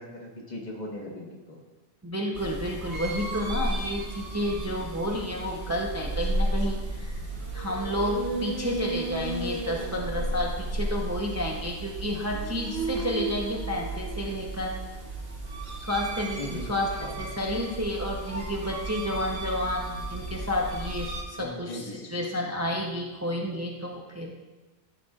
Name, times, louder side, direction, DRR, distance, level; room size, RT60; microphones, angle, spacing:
voice 1, 0.0-1.6 16.4-16.6 17.0-17.2 21.4-22.1, left 1 dB, 45° left, -1 dB, 1.5 m, -38 dB
voice 2, 2.0-7.2 7.5-14.8 15.8-16.9 17.2-24.3, left 1 dB, 15° right, -1 dB, 0.7 m, -31 dB
sound 1, 2.3-21.2, right 2 dB, 65° right, 1.4 m, -33 dB
14.0 x 6.9 x 2.4 m, 1.2 s
omnidirectional pair, 1.1 m